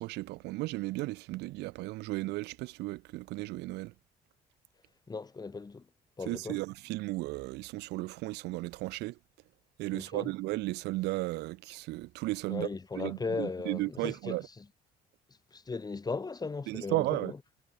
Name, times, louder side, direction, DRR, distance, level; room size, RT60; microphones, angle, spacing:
voice 1, 0.0-3.9 6.3-9.1 9.8-12.7 12.9-14.4 16.7-17.3, right 20 dB, 90° right, 1.5 m, -34 dB
voice 2, 5.1-5.9 6.2-6.6 9.9-10.3 12.5-14.7 15.5-17.4, left 4 dB, 25° left, 4.7 m, -37 dB
cardioid pair, 110°, 17 cm